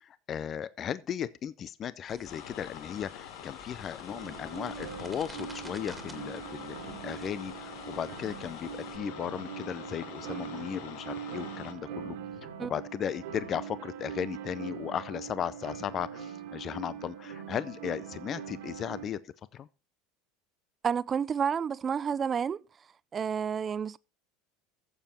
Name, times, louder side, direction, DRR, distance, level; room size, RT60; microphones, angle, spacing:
voice 1, 0.0-12.2 12.6-19.7, left 9 dB, 40° left, 0.6 m, -36 dB
sound 1, 2.1-9.0, right 2 dB, 5° right, 2.3 m, -52 dB
sound 2, 2.3-11.7, left 10 dB, 70° left, 1.3 m, -45 dB
sound 3, 4.1-19.1, right 8 dB, 80° right, 2.0 m, -42 dB
voice 2, 20.8-22.6 23.1-24.0, right 7 dB, 30° right, 0.4 m, -30 dB
14.5 x 7.2 x 4.3 m
supercardioid pair, 95°, 0 cm